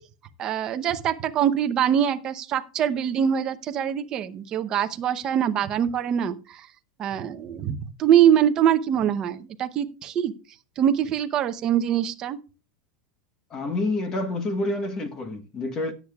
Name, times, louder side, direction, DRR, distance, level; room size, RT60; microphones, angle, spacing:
voice 1, 0.4-6.7 7.0-10.3 10.8-12.4, right 9 dB, 25° right, 0.7 m, -23 dB
voice 2, 13.5-15.9, left 2 dB, 20° left, 1.0 m, -28 dB
17.5 x 8.1 x 2.3 m
supercardioid pair, 175°, 3 cm